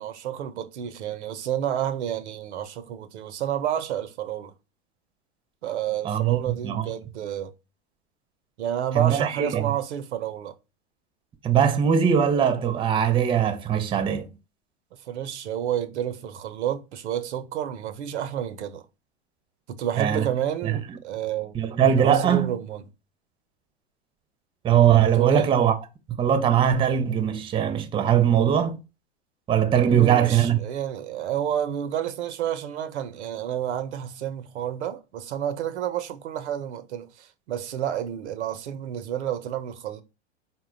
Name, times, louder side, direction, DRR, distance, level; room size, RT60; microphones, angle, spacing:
voice 1, 0.0-4.5 5.6-7.5 8.6-10.6 15.1-18.8 19.7-21.5 22.0-22.8 25.1-25.5 29.9-40.0, right 10 dB, 75° right, 0.6 m, -30 dB
voice 2, 6.0-6.8 8.9-9.6 11.4-14.3 20.0-20.2 20.6-20.7 21.5-22.5 24.6-25.7 26.2-28.8 29.5-30.6, right 9 dB, 15° right, 0.5 m, -21 dB
4.2 x 2.1 x 3.8 m
hypercardioid pair, 100°, 34 cm